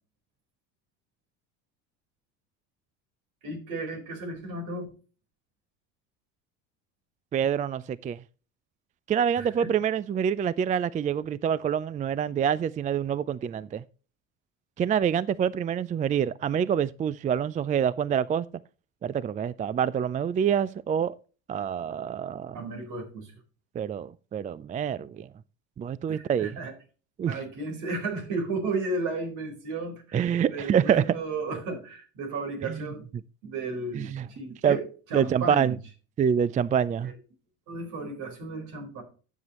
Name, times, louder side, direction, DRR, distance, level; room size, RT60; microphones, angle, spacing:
voice 1, 3.4-4.9 9.4-9.7 22.5-23.3 26.1-26.7 27.3-33.0 33.4-35.7 37.0-37.1 37.7-39.0, right 3 dB, 70° right, 4.4 m, -34 dB
voice 2, 7.3-8.2 9.1-13.8 14.8-18.5 19.0-21.2 21.5-22.6 23.8-25.3 25.8-26.6 27.2-27.4 30.1-31.0 32.6-32.8 33.9-34.3 34.6-34.8 35.1-35.8 36.2-37.1, right 8 dB, 25° right, 0.4 m, -26 dB
12.5 x 7.5 x 3.0 m
supercardioid pair, 95°, 33 cm